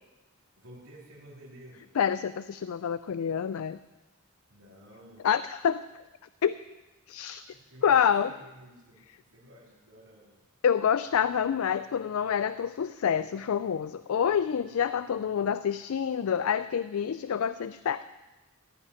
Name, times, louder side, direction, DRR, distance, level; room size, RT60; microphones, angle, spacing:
voice 1, 0.6-1.9 4.5-5.3 7.4-10.4, right 1 dB, 80° right, -6 dB, 3.5 m, -52 dB
voice 2, 2.0-3.8 5.2-5.8 6.4-6.6 7.1-7.4 7.8-8.3 10.6-18.0, left 8 dB, 85° left, 14 dB, 0.4 m, -27 dB
15.5 x 5.3 x 9.6 m, 1.1 s
head